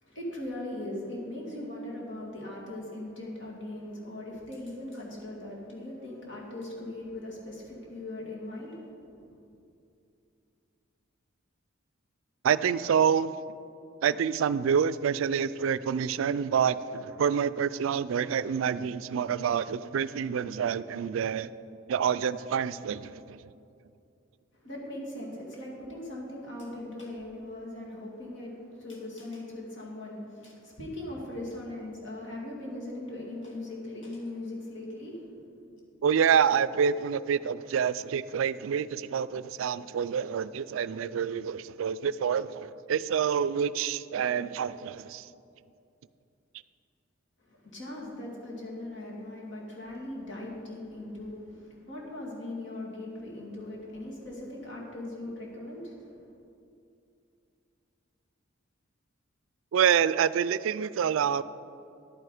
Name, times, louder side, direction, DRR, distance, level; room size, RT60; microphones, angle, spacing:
voice 1, 0.0-9.3 24.5-35.5 47.4-56.3, left 1 dB, 65° left, -3 dB, 2.5 m, -40 dB
voice 2, 12.4-13.3 14.0-21.5 21.9-23.4 36.0-45.3 59.7-61.4, right 7 dB, 80° right, 16 dB, 0.3 m, -27 dB
10.5 x 9.1 x 4.9 m, 2.6 s
head